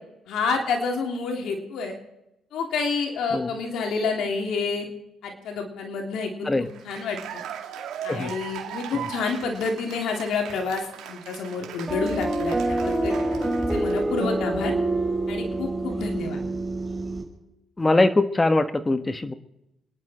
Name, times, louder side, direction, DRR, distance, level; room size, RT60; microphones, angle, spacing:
voice 1, 0.3-1.9 2.5-4.9 5.2-7.4 8.0-13.1 13.6-14.7 15.3-16.4, left 4 dB, 80° left, 2 dB, 3.2 m, -29 dB
Cheering / Applause, 6.7-14.2, right 10 dB, 90° right, 2.4 m, -39 dB
sound 1, 11.9-17.2, right 2 dB, 5° right, 5.2 m, -26 dB
voice 2, 17.8-19.3, left 2 dB, 20° left, 10 dB, 1.4 m, -22 dB
28.5 x 11.0 x 4.4 m, 0.90 s
cardioid pair, 90°, 0 cm